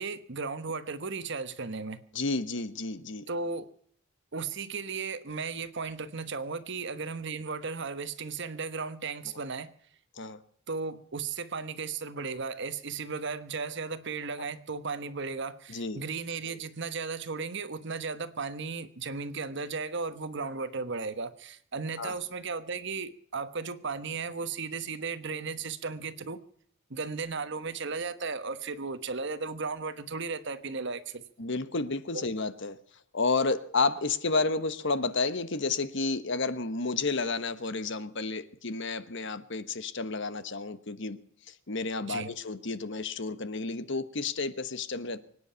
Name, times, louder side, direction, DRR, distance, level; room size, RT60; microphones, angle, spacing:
voice 1, 0.0-2.0 3.3-3.7 4.3-9.7 10.7-26.4 26.9-31.2 32.1-32.3 42.1-42.3, right 4 dB, 60° right, 1.2 m, -35 dB
voice 2, 2.1-3.2 10.2-10.4 15.7-16.0 22.0-22.1 31.4-32.8 33.1-41.2 41.5-45.2, left 3 dB, 60° left, 1.2 m, -31 dB
25.0 x 9.7 x 5.7 m
head